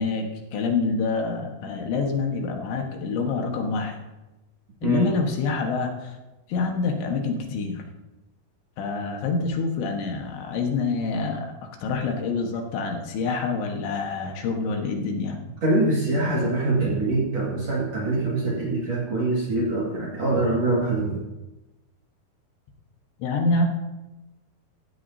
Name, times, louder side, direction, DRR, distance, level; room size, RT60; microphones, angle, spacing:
voice 1, 0.0-3.9 4.8-6.1 6.5-7.8 8.8-11.5 11.8-15.4 23.2-23.7, left 4 dB, 75° left, 2 dB, 3.6 m, -26 dB
voice 2, 15.6-21.2, right 2 dB, 45° right, -4 dB, 2.5 m, -24 dB
16.0 x 15.0 x 2.8 m, 1.1 s
omnidirectional pair, 5.4 m